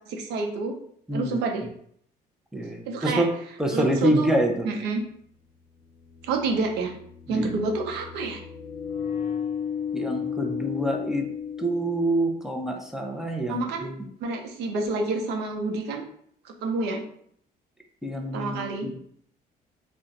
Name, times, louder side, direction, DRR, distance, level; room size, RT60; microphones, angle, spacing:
voice 1, 0.1-0.7 1.1-1.6 2.8-3.2 3.7-4.3 4.6-5.0 6.2-6.9 7.3-8.4 13.5-13.9 14.2-16.0 16.4-17.0 18.3-18.9, right 3 dB, 80° right, 2 dB, 0.7 m, -28 dB
voice 2, 2.5-3.3 3.6-4.7 7.3-7.5 9.9-11.3 11.6-14.0 18.0-18.9, right 1 dB, 5° right, 2 dB, 0.5 m, -26 dB
sound 1, 5.7-12.6, left 7 dB, 55° left, 0.5 m, -34 dB
2.4 x 2.2 x 3.9 m, 0.64 s
cardioid pair, 110°, 17 cm